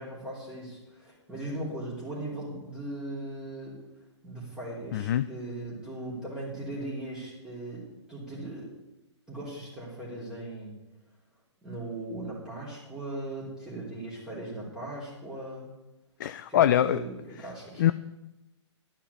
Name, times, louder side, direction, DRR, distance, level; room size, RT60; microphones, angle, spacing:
voice 1, 0.0-3.8 4.2-8.7 9.3-10.7 11.6-15.7 16.5-17.8, right 1 dB, 5° right, -8 dB, 3.7 m, -38 dB
voice 2, 4.9-5.3 16.2-17.0 17.8-17.9, left 11 dB, 40° left, 12 dB, 0.4 m, -23 dB
12.0 x 5.7 x 8.5 m, 0.98 s
figure-of-eight pair, 130°, 15 cm